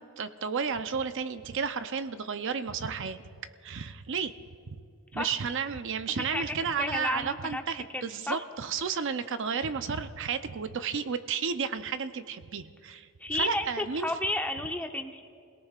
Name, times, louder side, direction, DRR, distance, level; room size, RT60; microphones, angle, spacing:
voice 1, 0.0-3.2 3.6-4.3 4.7-4.8 5.1-14.1, right 6 dB, 65° right, 10 dB, 0.6 m, -32 dB
voice 2, 6.8-7.6 7.9-8.4 13.2-15.2, left 1 dB, 10° left, 4 dB, 0.8 m, -32 dB
29.0 x 18.0 x 2.5 m, 2.2 s
head